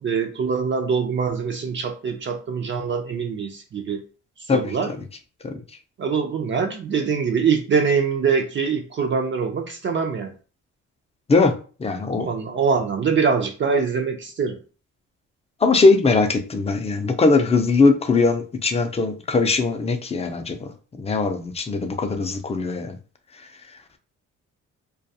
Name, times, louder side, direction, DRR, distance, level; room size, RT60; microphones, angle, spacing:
voice 1, 0.0-4.0 4.5-4.9 6.0-10.3 12.2-14.6, right 5 dB, 40° right, 4 dB, 0.5 m, -23 dB
voice 2, 11.8-12.3 15.6-20.7 21.0-23.0, left 3 dB, 20° left, 6 dB, 0.4 m, -20 dB
2.3 x 2.3 x 2.7 m, 0.37 s
cardioid pair, 90°, 30 cm